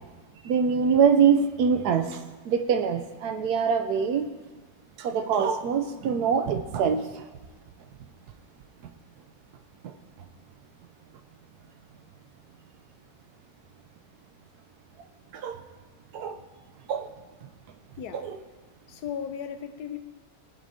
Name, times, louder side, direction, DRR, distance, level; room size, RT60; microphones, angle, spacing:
voice 1, 0.4-4.3 5.0-7.2 9.8-9.9 15.3-15.6 16.1-16.4 16.9-17.1 18.1-18.4, right 6 dB, 70° right, 1.1 m, -24 dB
voice 2, 18.0-18.3 18.9-20.0, left 8 dB, 70° left, 1.1 m, -36 dB
17.0 x 6.2 x 2.7 m
omnidirectional pair, 1.9 m